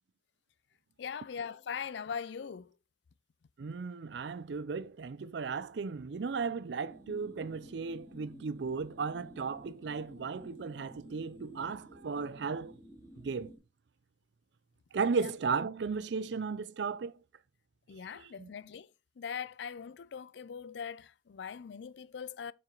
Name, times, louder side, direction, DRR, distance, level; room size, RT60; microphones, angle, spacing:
voice 1, 1.0-2.7 15.2-15.3 17.9-18.9 19.2-22.5, left 7 dB, 70° left, 0.4 m, -41 dB
voice 2, 3.6-12.7 13.2-13.5 14.9-17.2 18.1-18.5, right 5 dB, 70° right, 0.4 m, -35 dB
sound 1, 6.9-13.6, equal, 10° left, 2.6 m, -53 dB
7.1 x 5.9 x 3.8 m
head